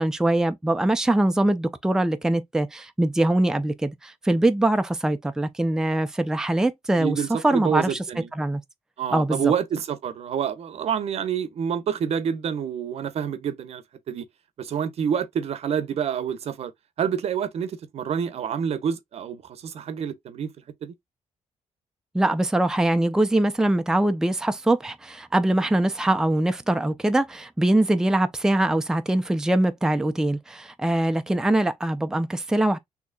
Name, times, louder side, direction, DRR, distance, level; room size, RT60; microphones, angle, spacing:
voice 1, 0.0-8.0 8.4-8.6 9.1-9.5 22.1-32.8, right 1 dB, 5° right, 0.5 m, -23 dB
voice 2, 7.0-8.3 9.0-14.3 14.6-16.7 17.0-20.5 20.8-20.9, right 8 dB, 60° right, 0.8 m, -28 dB
6.3 x 2.9 x 2.2 m
cardioid pair, 100°, 12 cm